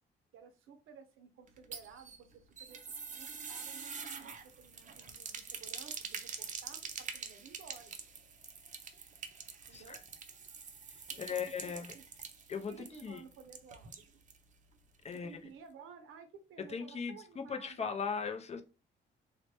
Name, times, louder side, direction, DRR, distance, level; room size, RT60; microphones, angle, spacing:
voice 1, 0.3-8.0 9.7-10.0 11.1-12.0 12.7-14.0 15.1-17.9, right 6 dB, 85° right, 0.7 m, -55 dB
sound 1, 1.5-14.4 14.7-14.8 15.1-15.2, right 6 dB, 40° right, 0.5 m, -46 dB
voice 2, 10.9-11.9 12.5-12.8 13.0-13.2 15.0-15.4 16.7-18.6, left 6 dB, 30° left, 0.4 m, -38 dB
3.2 x 2.1 x 2.9 m
cardioid pair, 105°, 20 cm